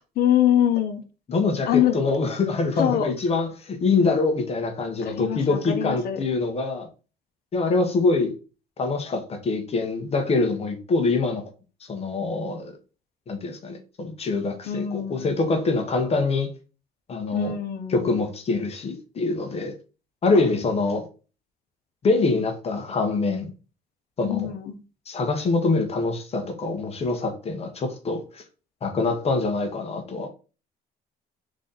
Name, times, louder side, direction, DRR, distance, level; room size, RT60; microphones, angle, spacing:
voice 1, 0.2-1.0 1.7-2.0 2.8-3.1 5.0-6.2 14.6-15.3 17.3-18.2 24.2-24.8, left 10 dB, 65° left, 0.9 m, -24 dB
voice 2, 1.3-6.9 7.5-8.3 8.8-11.4 11.9-12.8 13.3-16.5 17.1-17.5 17.9-19.7 20.2-21.0 22.0-23.5 24.2-24.5 25.1-28.4 28.8-30.3, left 3 dB, 35° left, 1.1 m, -24 dB
3.9 x 3.2 x 4.0 m
cardioid pair, 110°, 17 cm